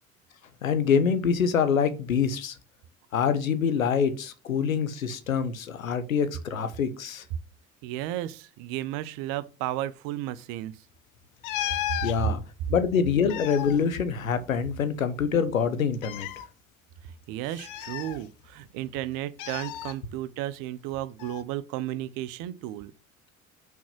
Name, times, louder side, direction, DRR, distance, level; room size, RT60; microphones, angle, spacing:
voice 1, 0.6-2.5 3.1-7.2 11.6-12.4 12.7-16.3, left 6 dB, 80° left, 0.9 m, -25 dB
voice 2, 7.8-10.8 12.2-12.3 17.3-22.9, right 13 dB, 55° right, 0.7 m, -33 dB
sound 1, 11.4-12.2 13.1-14.8 15.0-15.1 15.9-16.4 17.6-18.6 19.4-19.9 21.2-21.4, left 13 dB, 50° left, 0.8 m, -34 dB
6.2 x 3.5 x 5.9 m
figure-of-eight pair, 60°, 40 cm